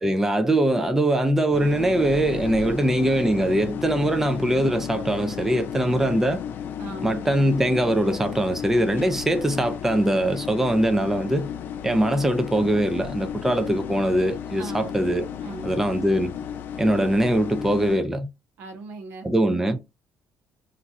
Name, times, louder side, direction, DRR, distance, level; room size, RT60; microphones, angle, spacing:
voice 1, 0.0-6.4 7.0-11.5 11.8-15.3 15.6-16.4 16.8-18.3 19.2-19.8, right 1 dB, 10° right, 0.4 m, -22 dB
sound 1, 1.5-18.0, left 8 dB, 60° left, 0.4 m, -34 dB
voice 2, 6.8-7.2 14.6-15.1 15.4-15.8 18.6-19.3, right 3 dB, 70° right, 0.9 m, -39 dB
2.5 x 2.3 x 4.0 m
cardioid pair, 100°, 4 cm